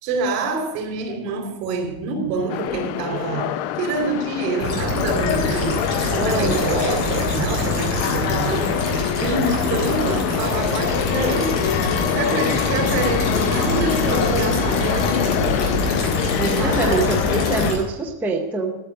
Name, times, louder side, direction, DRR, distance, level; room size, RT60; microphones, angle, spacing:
voice 1, 0.0-11.6 12.0-15.5 16.6-17.1, right 3 dB, 70° right, 4 dB, 4.4 m, -26 dB
sound 1, 2.5-17.7, left 11 dB, 55° left, 0.8 m, -25 dB
sound 2, 4.6-17.8, left 1 dB, 30° left, 3.5 m, -25 dB
voice 2, 6.2-6.6 16.4-18.8, right 3 dB, 5° right, 0 dB, 0.6 m, -25 dB
13.5 x 6.7 x 9.0 m, 0.96 s
cardioid pair, 175°, 50 cm